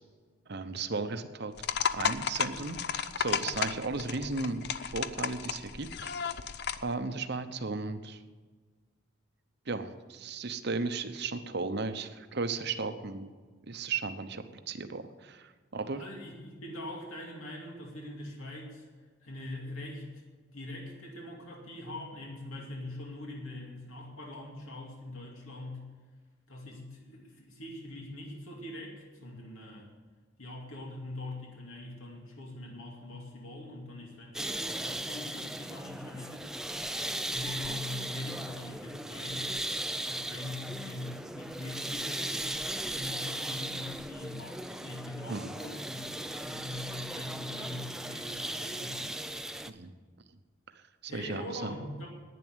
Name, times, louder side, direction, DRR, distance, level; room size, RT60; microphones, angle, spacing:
voice 1, 0.5-1.5 1.9-6.2 6.8-8.2 9.7-13.3 13.6-16.1 45.3-45.5 49.7-49.9 50.7-51.8, right 3 dB, 55° right, 9 dB, 0.9 m, -35 dB
sound 1, 1.6-6.9, left 7 dB, 55° left, 0.5 m, -33 dB
voice 2, 15.8-18.8 19.2-20.1 20.5-25.8 26.5-29.9 30.4-36.5 37.3-39.5 40.0-42.5 42.9-46.1 46.4-49.2 51.1-52.1, left 1 dB, 85° left, -1 dB, 2.6 m, -43 dB
sound 2, 34.3-49.7, right 1 dB, 5° right, 0.4 m, -37 dB
11.0 x 9.8 x 8.1 m, 1.4 s
head